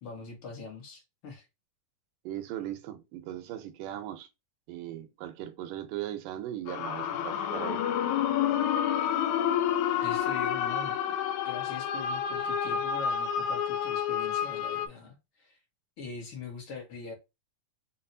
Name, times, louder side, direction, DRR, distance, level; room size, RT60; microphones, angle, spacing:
voice 1, 0.0-1.5 10.0-11.2 11.5-15.6 16.0-17.1, left 5 dB, 50° left, 1.8 m, -42 dB
voice 2, 2.3-4.3 4.7-7.8, right 12 dB, 80° right, 2.2 m, -38 dB
sound 1, 6.7-14.9, left 9 dB, 80° left, 1.8 m, -29 dB
5.9 x 2.5 x 2.6 m
omnidirectional pair, 3.9 m